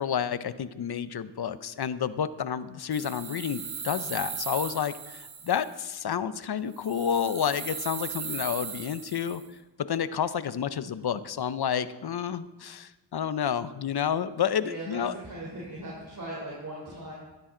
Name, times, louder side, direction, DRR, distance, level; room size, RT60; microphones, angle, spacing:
voice 1, 0.0-9.4 9.8-15.1, left 8 dB, 55° left, 14 dB, 0.7 m, -30 dB
sound 1, 2.9-5.8 6.7-9.5, right 6 dB, 80° right, 1.7 m, -38 dB
voice 2, 14.6-17.1, right 1 dB, 40° right, -4 dB, 3.6 m, -39 dB
15.0 x 12.0 x 3.9 m, 1.1 s
cardioid pair, 75°, 46 cm